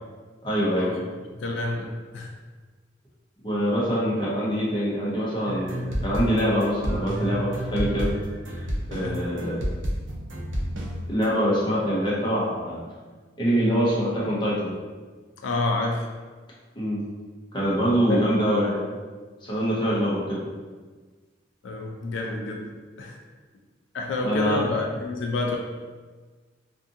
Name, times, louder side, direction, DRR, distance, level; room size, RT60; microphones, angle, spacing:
voice 1, 0.4-0.9 3.4-8.1 8.5-8.6 8.9-9.6 11.1-12.8 13.4-14.8 16.8-17.0 17.5-18.8 19.4-20.4 24.2-24.7, equal, 25° left, -7 dB, 0.7 m, -24 dB
voice 2, 1.3-2.3 9.0-9.2 15.4-16.1 18.1-18.3 21.6-22.7 23.0-23.2 23.9-25.6, left 3 dB, 85° left, 0 dB, 0.4 m, -28 dB
sound 1, 5.5-11.3, equal, 85° right, 0.5 m, -30 dB
2.6 x 2.4 x 2.6 m, 1.4 s
head